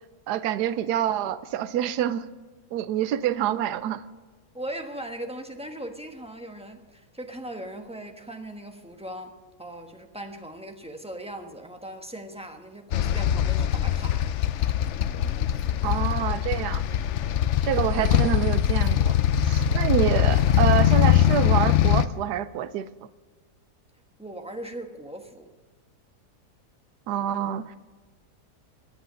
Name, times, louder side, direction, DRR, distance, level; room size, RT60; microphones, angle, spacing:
voice 1, 0.3-2.3 2.7-4.0 15.8-16.8 17.6-19.2 19.4-22.9 27.1-27.8, right 11 dB, 80° right, 1.2 m, -27 dB
voice 2, 4.5-14.3 24.2-25.5, right 1 dB, 5° right, 1.0 m, -39 dB
sound 1, 12.9-22.1, left 10 dB, 65° left, 0.7 m, -22 dB
22.5 x 8.0 x 6.3 m
omnidirectional pair, 1.7 m